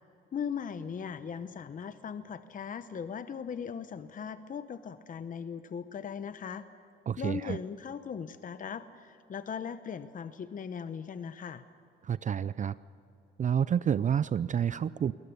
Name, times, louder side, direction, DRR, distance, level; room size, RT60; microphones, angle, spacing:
voice 1, 0.3-6.6 7.2-11.6, left 7 dB, 40° left, 12 dB, 0.8 m, -39 dB
voice 2, 7.1-7.6 12.0-12.8 13.4-15.1, right 8 dB, 40° right, 16 dB, 0.4 m, -29 dB
22.0 x 19.5 x 6.8 m, 2.9 s
cardioid pair, 90°, 20 cm